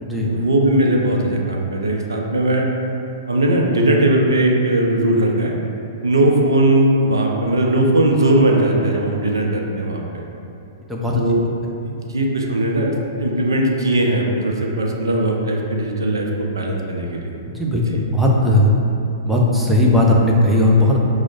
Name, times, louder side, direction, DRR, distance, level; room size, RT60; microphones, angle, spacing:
voice 1, 0.2-2.7 3.3-5.6 6.0-10.2 11.2-11.4 11.8-17.3 17.9-18.0, right 1 dB, 85° right, 0 dB, 0.4 m, -19 dB
voice 2, 10.9-11.2 17.5-18.7 19.3-21.0, left 1 dB, 5° right, -3 dB, 0.5 m, -16 dB
5.9 x 2.0 x 2.5 m, 2.7 s
hypercardioid pair, 115°, 2 cm